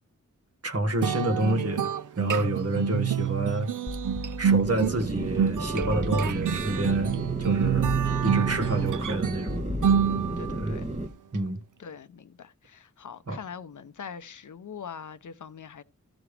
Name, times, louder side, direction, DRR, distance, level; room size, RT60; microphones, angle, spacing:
voice 1, 0.6-3.7 4.4-7.1 7.4-7.9 8.2-9.6 10.6-10.7 11.3-11.6 13.3-13.4, right 1 dB, 55° right, 1.6 m, -28 dB
sound 1, 1.0-10.7, right 8 dB, 85° right, 0.5 m, -27 dB
sound 2, 3.9-4.9 5.8-6.7 7.6-8.7 9.5-10.5, left 3 dB, 15° left, 0.4 m, -37 dB
sound 3, 4.6-11.1, right 2 dB, 25° right, 1.1 m, -33 dB
voice 2, 8.7-9.0 10.4-10.9 11.8-15.8, left 7 dB, 80° left, 0.7 m, -42 dB
14.0 x 6.0 x 3.3 m
wide cardioid pair, 70°, 30 cm